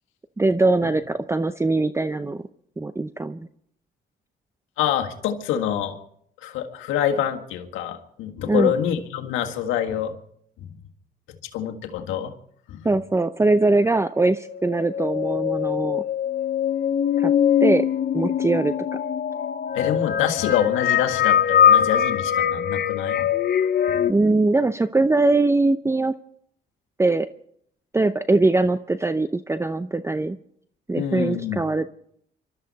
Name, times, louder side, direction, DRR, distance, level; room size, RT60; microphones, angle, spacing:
voice 1, 0.4-2.4 2.8-3.5 8.5-8.7 12.8-16.0 17.2-17.3 17.6-17.9 18.1-19.0 24.1-26.1 27.0-27.3 27.9-30.4 30.9-31.9, right 2 dB, 15° right, 11 dB, 0.6 m, -21 dB
voice 2, 4.8-6.0 6.4-10.1 10.7-10.8 11.5-12.3 12.7-12.9 19.7-23.3 23.9-24.0 30.9-31.6, left 9 dB, 90° left, 4 dB, 1.6 m, -26 dB
sound 1, 14.5-24.1, left 9 dB, 50° left, 0.8 m, -22 dB
26.5 x 13.0 x 4.1 m, 0.69 s
supercardioid pair, 70°, 20 cm